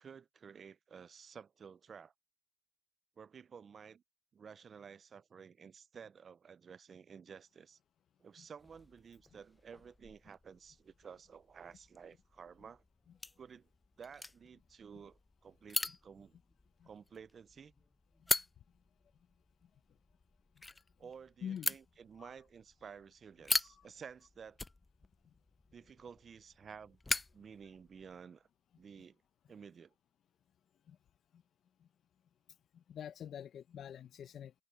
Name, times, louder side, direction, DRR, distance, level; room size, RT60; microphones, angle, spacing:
voice 1, 0.0-2.1 3.2-4.0 4.3-7.8 8.2-12.8 13.4-13.7 14.0-16.4 16.8-17.7 21.0-24.6 25.7-27.0 27.3-28.5 28.8-29.2 29.5-29.9, right 6 dB, 45° right, 0.6 m, -53 dB
sound 1, 8.6-28.2, left 2 dB, 20° left, 0.5 m, -43 dB
voice 2, 21.4-21.7 22.2-22.3 30.9-31.0 32.7-34.5, left 9 dB, 65° left, 0.8 m, -45 dB
cardioid pair, 90°, 0 cm